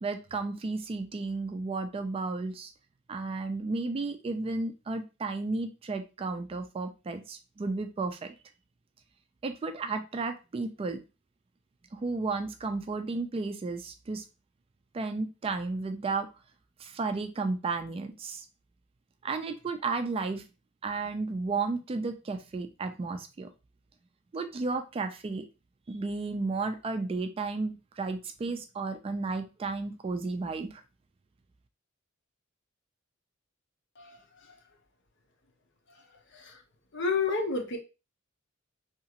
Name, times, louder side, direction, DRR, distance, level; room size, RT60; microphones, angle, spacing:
voice 1, 0.0-2.7 3.1-8.3 9.4-11.0 12.0-14.2 14.9-16.3 16.8-18.4 19.2-20.4 20.8-23.5 24.3-25.5 25.9-30.8, right 3 dB, 30° right, 7 dB, 0.3 m, -33 dB
voice 2, 36.9-37.8, left 4 dB, 60° left, 3 dB, 0.7 m, -30 dB
2.8 x 2.4 x 2.8 m, 0.29 s
head